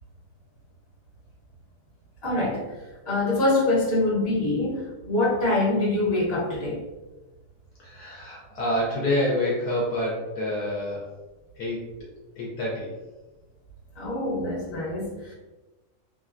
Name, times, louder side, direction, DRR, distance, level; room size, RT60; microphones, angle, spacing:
voice 1, 2.2-2.7 3.1-6.8 13.9-15.3, left 2 dB, 40° left, -6 dB, 1.2 m, -24 dB
voice 2, 7.8-11.1 11.6-11.8 12.4-12.9, left 1 dB, 70° left, -5 dB, 1.2 m, -27 dB
3.2 x 2.2 x 2.4 m, 1.1 s
omnidirectional pair, 1.8 m